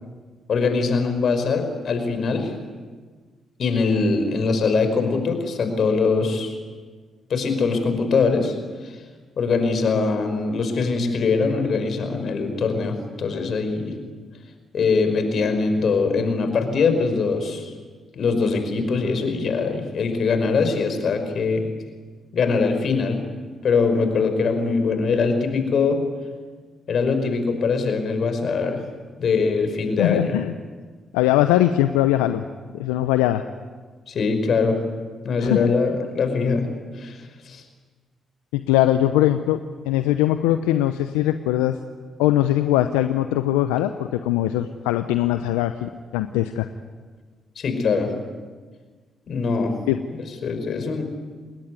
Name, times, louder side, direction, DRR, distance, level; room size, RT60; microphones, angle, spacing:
voice 1, 0.5-2.5 3.6-6.6 7.3-8.5 8.8-8.9 9.4-14.0 14.7-17.7 18.1-21.6 22.3-23.2 23.6-26.0 26.9-28.8 29.2-30.4 34.1-34.8 35.2-36.7 37.0-37.6 47.6-48.1 49.3-49.7 50.1-51.0, left 4 dB, 60° left, 7 dB, 5.5 m, -22 dB
voice 2, 30.0-30.5 31.1-32.4 32.7-33.4 35.4-35.7 38.5-39.6 39.8-41.8 42.2-46.7 49.9-50.0, left 13 dB, 85° left, 9 dB, 0.8 m, -21 dB
28.5 x 20.5 x 9.7 m, 1.5 s
hypercardioid pair, 45°, 0 cm